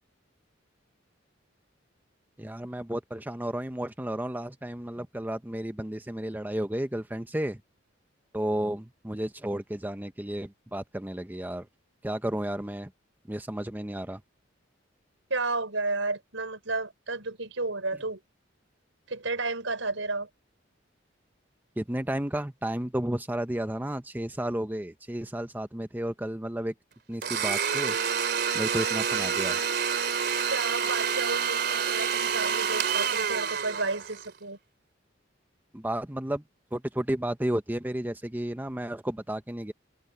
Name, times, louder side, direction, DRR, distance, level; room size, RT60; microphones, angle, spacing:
voice 1, 2.4-7.6 8.3-11.7 12.0-12.9 13.3-14.2 21.8-26.7 27.1-28.0 28.5-29.6 35.7-36.4 36.7-39.7, right 1 dB, 10° right, 0.8 m, -32 dB
voice 2, 15.3-18.2 19.1-20.3 30.5-34.6, right 3 dB, 85° right, 5.1 m, -32 dB
Domestic sounds home sounds, 27.2-34.3, right 7 dB, 60° right, 3.3 m, -28 dB
head